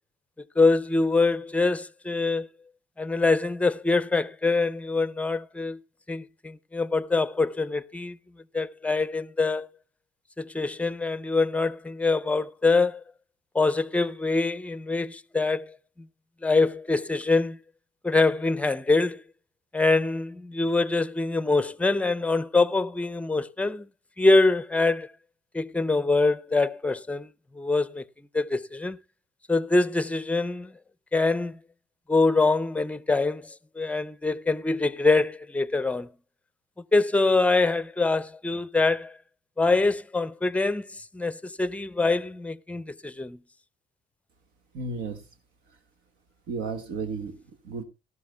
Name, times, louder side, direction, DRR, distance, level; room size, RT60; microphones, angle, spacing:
voice 1, 0.6-2.5 3.0-5.8 6.1-8.2 8.5-9.7 10.4-13.0 13.5-15.8 16.4-17.6 18.0-19.2 19.7-23.9 24.2-25.1 25.5-29.0 29.5-30.7 31.1-31.6 32.1-36.1 36.9-39.2 39.6-43.4, left 3 dB, 10° left, 0.5 m, -24 dB
voice 2, 44.7-45.3 46.5-47.8, right 4 dB, 85° right, 1.6 m, -33 dB
18.0 x 13.5 x 2.2 m
cardioid pair, 110°, 17 cm